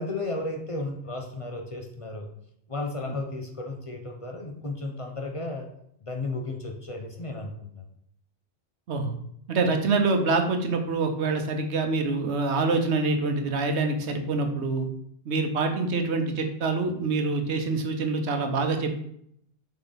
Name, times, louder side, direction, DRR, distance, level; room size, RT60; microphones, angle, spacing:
voice 1, 0.0-2.3 2.7-5.7 6.0-7.8, left 2 dB, 35° left, 1 dB, 0.8 m, -34 dB
voice 2, 9.5-14.9 15.3-18.9, right 3 dB, 85° right, 5 dB, 1.2 m, -25 dB
6.1 x 4.3 x 4.0 m, 0.71 s
omnidirectional pair, 1.1 m